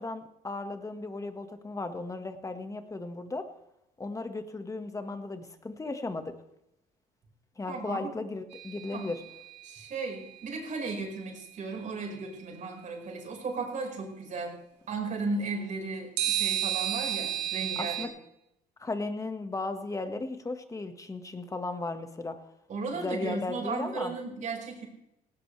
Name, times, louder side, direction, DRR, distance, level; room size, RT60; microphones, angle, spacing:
voice 1, 0.0-3.5 4.0-6.3 7.6-9.2 17.8-18.1 18.8-22.4 22.9-24.1, left 3 dB, 20° left, 8 dB, 1.7 m, -36 dB
voice 2, 7.7-8.1 8.9-9.2 9.6-14.6 14.9-18.1 22.7-24.9, right 3 dB, 45° right, 1 dB, 5.1 m, -35 dB
sound 1, 8.5-9.8 16.2-18.1, right 12 dB, 90° right, 2.6 m, -32 dB
18.0 x 17.0 x 3.4 m, 0.83 s
cardioid pair, 110°, 17 cm